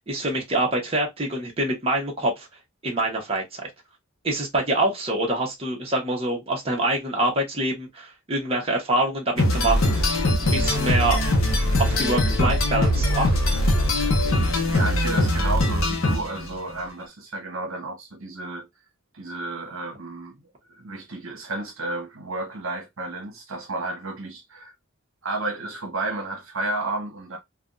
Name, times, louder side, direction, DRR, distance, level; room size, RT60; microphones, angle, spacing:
voice 1, 0.1-2.5 2.8-3.7 4.2-9.9 10.4-11.2 11.8-13.6, right 1 dB, 30° right, 1.0 m, -25 dB
sound 1, 9.4-16.5, left 1 dB, 70° left, 0.8 m, -22 dB
sound 2, 9.6-14.8, equal, 45° right, 1.4 m, -28 dB
voice 2, 14.7-18.7 19.1-20.4 20.7-24.7 25.2-27.4, right 2 dB, 70° right, 1.0 m, -32 dB
3.4 x 2.3 x 2.5 m
head